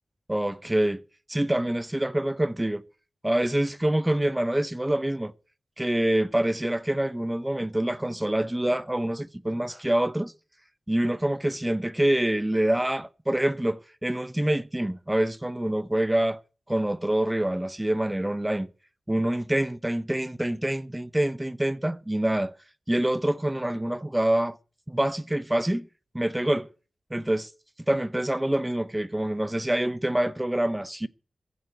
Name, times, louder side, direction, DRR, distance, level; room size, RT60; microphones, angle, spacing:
voice 1, 0.3-1.0 1.3-2.8 3.2-5.3 5.8-10.3 10.9-16.4 16.7-18.7 19.1-22.5 22.9-24.6 24.9-25.9 26.1-26.7 27.1-27.5 27.9-31.1, right 1 dB, 15° right, 0.7 m, -26 dB
15.0 x 6.7 x 9.3 m
cardioid pair, 45°, 0 cm